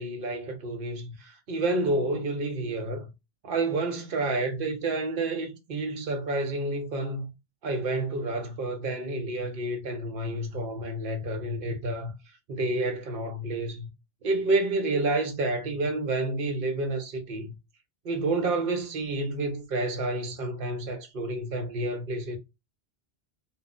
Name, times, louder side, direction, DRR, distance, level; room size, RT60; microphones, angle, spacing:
voice 1, 0.0-3.1 3.4-7.3 7.6-12.1 12.5-13.9 14.2-17.5 18.0-22.4, right 2 dB, 60° right, 0.9 m, -29 dB
2.3 x 2.1 x 3.6 m
omnidirectional pair, 1.0 m